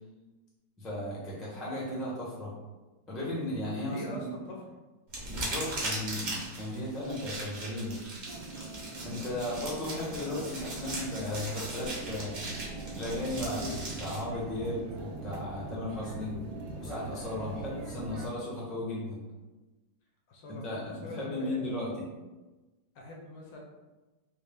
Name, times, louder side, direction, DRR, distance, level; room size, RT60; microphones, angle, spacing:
voice 1, 0.8-2.5 3.1-4.3 5.2-8.0 9.0-12.4 13.0-16.4 16.8-19.2 20.5-22.1, left 1 dB, ahead, -6 dB, 0.3 m, -35 dB
voice 2, 3.8-4.8 17.6-17.8 20.3-20.7 21.0-21.7 22.9-23.6, left 2 dB, 70° left, -1 dB, 1.3 m, -43 dB
sound 1, 5.1-14.2, right 2 dB, 45° right, 1.0 m, -39 dB
sound 2, 8.2-18.3, right 2 dB, 75° right, 1.1 m, -42 dB
4.4 x 2.3 x 3.4 m, 1.2 s
omnidirectional pair, 2.3 m